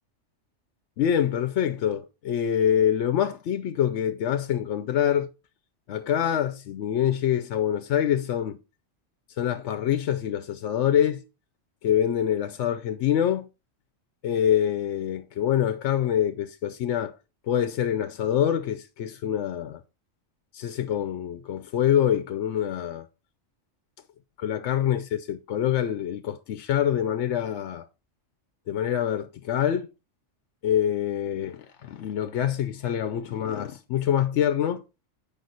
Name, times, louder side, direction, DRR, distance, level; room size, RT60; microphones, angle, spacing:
voice 1, 1.0-5.3 5.9-8.6 9.4-11.2 11.8-13.5 14.2-17.2 17.5-19.8 20.5-23.1 24.4-27.9 28.7-29.9 30.6-34.8, left 10 dB, 75° left, 0.9 m, -25 dB
7.8 x 5.4 x 4.0 m
omnidirectional pair, 1.2 m